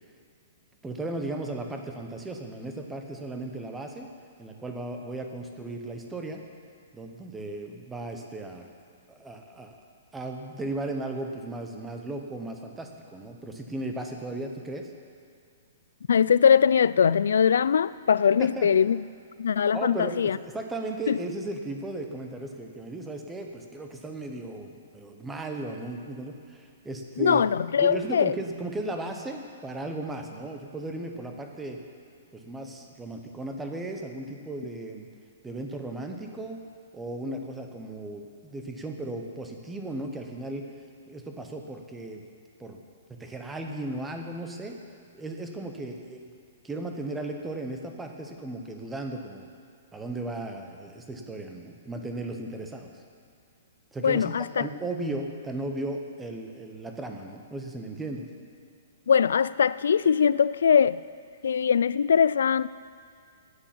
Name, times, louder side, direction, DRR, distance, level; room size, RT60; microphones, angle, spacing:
voice 1, 0.8-4.1 4.4-6.4 6.9-8.7 9.1-9.8 10.1-14.9 18.4-18.7 19.7-27.4 27.8-31.8 32.3-35.1 35.4-36.6 36.9-40.7 41.1-42.2 42.6-42.8 43.1-44.8 45.1-46.3 46.6-49.5 49.9-53.0 53.9-58.3, right 2 dB, 5° right, 3 dB, 0.7 m, -36 dB
voice 2, 16.1-19.0 19.4-20.4 21.1-21.2 27.2-28.3 54.0-54.7 59.1-61.0 61.4-62.7, left 7 dB, 80° left, 18 dB, 0.3 m, -21 dB
11.0 x 9.3 x 7.4 m, 2.3 s
hypercardioid pair, 180°, 0 cm